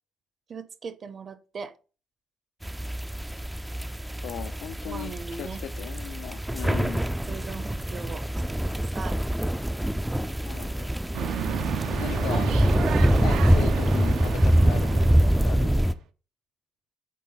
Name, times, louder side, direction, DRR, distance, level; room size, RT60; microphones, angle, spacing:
voice 1, 0.5-1.7 4.8-5.6 6.7-9.2, right 5 dB, 35° right, 0.7 m, -40 dB
sound 1, 2.6-15.9, right 1 dB, 5° right, 0.3 m, -25 dB
voice 2, 4.2-7.0 10.4-10.9 11.9-12.6 13.2-15.8, left 10 dB, 80° left, 0.5 m, -37 dB
sound 2, 11.1-16.0, right 9 dB, 75° right, 0.6 m, -32 dB
8.4 x 3.5 x 3.9 m
cardioid pair, 145°, 0 cm